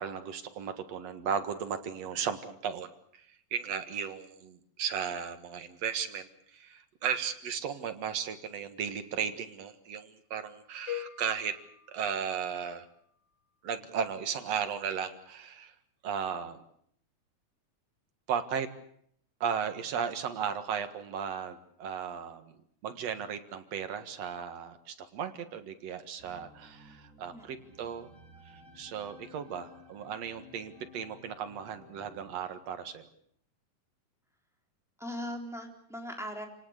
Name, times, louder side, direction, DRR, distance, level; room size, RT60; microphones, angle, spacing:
voice 1, 0.0-11.5 11.9-12.9 13.6-15.7 16.0-16.6 18.3-18.7 19.4-22.5 22.8-28.1 28.8-33.1, right 7 dB, 60° right, 8 dB, 2.7 m, -35 dB
sound 1, 10.9-12.9, left 13 dB, 45° left, 1.8 m, -43 dB
sound 2, 26.2-32.4, left 2 dB, 25° left, 3.5 m, -55 dB
voice 2, 27.3-27.7 35.0-36.5, equal, ahead, 2 dB, 3.6 m, -39 dB
28.0 x 18.0 x 8.1 m, 0.68 s
omnidirectional pair, 3.5 m